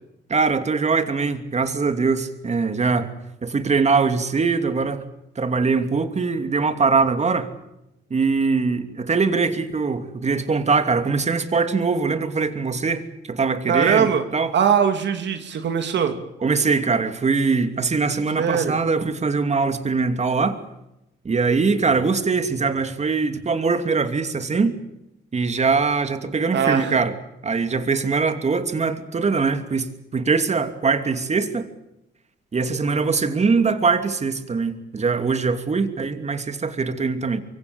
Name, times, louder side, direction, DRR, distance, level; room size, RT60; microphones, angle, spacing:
voice 1, 0.3-3.1 3.4-5.0 5.3-7.5 8.1-14.5 16.4-20.6 21.2-24.8 25.3-27.1 27.4-31.7 32.5-37.4, right 4 dB, 35° right, 8 dB, 2.9 m, -22 dB
voice 2, 13.7-14.2 14.5-16.1 18.4-18.8 26.5-27.0, right 7 dB, 65° right, 6 dB, 2.7 m, -21 dB
25.0 x 23.5 x 7.2 m, 0.89 s
cardioid pair, 90°, 20 cm